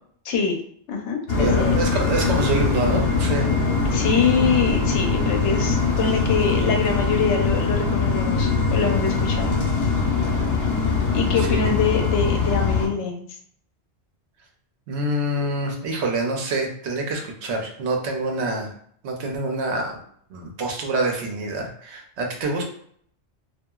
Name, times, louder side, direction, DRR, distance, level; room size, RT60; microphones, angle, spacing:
voice 1, 0.2-0.6 0.9-1.8 3.8-9.5 11.1-13.3, left 5 dB, 90° left, 2 dB, 0.9 m, -24 dB
sound 1, 1.3-12.9, left 4 dB, 65° left, 0.9 m, -22 dB
voice 2, 1.4-3.5 11.3-11.7 14.9-18.7 19.0-20.0 20.3-22.6, right 2 dB, 75° right, 2 dB, 0.9 m, -26 dB
2.7 x 2.4 x 2.3 m, 0.62 s
omnidirectional pair, 1.2 m